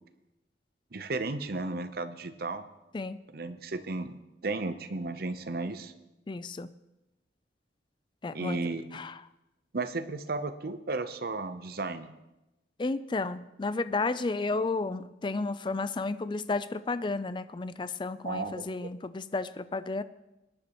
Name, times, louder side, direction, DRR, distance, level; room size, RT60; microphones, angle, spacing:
voice 1, 0.9-2.7 3.3-4.1 4.4-5.9 8.3-8.8 9.7-12.1 18.2-18.9, right 3 dB, 55° right, 10 dB, 0.7 m, -34 dB
voice 2, 6.3-6.7 8.2-8.6 8.9-9.1 12.8-20.0, left 3 dB, 25° left, 14 dB, 0.4 m, -32 dB
20.0 x 10.5 x 3.0 m, 0.98 s
head